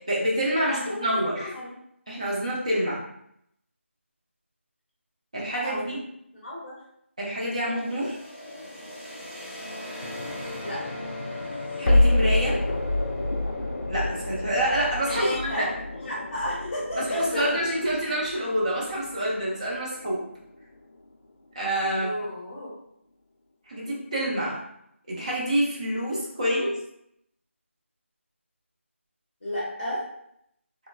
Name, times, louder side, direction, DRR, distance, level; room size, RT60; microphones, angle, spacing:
voice 1, 0.1-1.5 2.1-3.0 5.3-6.0 7.2-8.2 11.8-12.6 13.9-15.7 17.1-20.2 21.5-22.2 23.7-24.6 25.1-26.7, right 1 dB, 30° right, -5 dB, 0.5 m, -27 dB
voice 2, 0.7-1.7 5.5-6.0 6.4-6.7 10.6-10.8 15.1-15.6 16.0-17.5 21.9-22.7 26.4-26.7 29.4-30.0, left 1 dB, 35° left, -8 dB, 0.9 m, -32 dB
sound 1, 7.7-19.4, left 2 dB, 10° left, 0.9 m, -40 dB
sound 2, 10.0-21.1, left 2 dB, 55° left, 0.3 m, -29 dB
3.1 x 2.2 x 2.3 m, 0.75 s
figure-of-eight pair, 175°, 7 cm